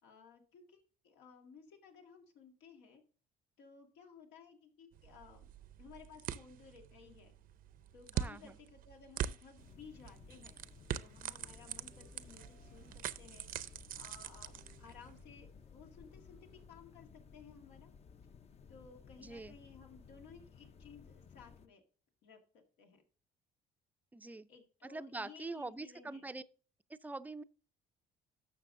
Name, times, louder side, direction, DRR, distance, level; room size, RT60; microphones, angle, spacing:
voice 1, 0.0-3.0 3.6-5.5 5.8-7.3 7.9-10.5 10.9-12.9 13.2-17.9 18.7-21.8 22.2-22.4 22.8-23.0 24.5-26.3, left 6 dB, 85° left, 1.9 m, -57 dB
sound 1, 4.9-15.2, right 10 dB, 55° right, 0.6 m, -44 dB
voice 2, 8.1-8.6 19.2-19.6 24.1-24.5 24.8-26.4 26.9-27.4, right 2 dB, 10° right, 0.4 m, -44 dB
sound 2, 9.6-21.7, left 6 dB, 40° left, 0.6 m, -58 dB
sound 3, 11.5-16.7, left 4 dB, 65° left, 1.6 m, -63 dB
12.0 x 6.8 x 2.6 m
cardioid pair, 110°, 17 cm